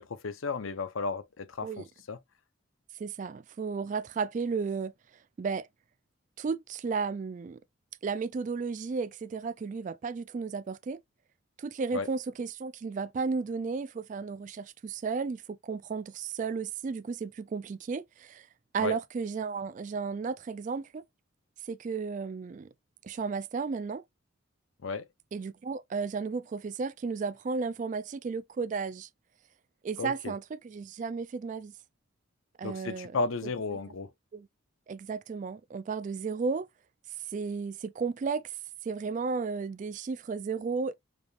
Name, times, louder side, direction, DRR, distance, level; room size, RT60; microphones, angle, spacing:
voice 1, 0.0-2.2 11.9-12.1 18.8-19.0 24.8-25.0 30.0-30.3 32.6-34.1, left 4 dB, 85° left, 0.7 m, -34 dB
voice 2, 3.0-4.9 5.4-5.7 6.4-7.6 8.0-11.0 11.6-18.5 18.7-21.0 21.6-22.7 23.0-24.0 25.3-29.1 29.8-31.7 32.6-33.1 33.7-33.8 34.3-34.5 34.9-36.7 37.3-38.6 38.8-40.9, right 5 dB, 40° right, 0.3 m, -33 dB
5.0 x 3.2 x 2.4 m
head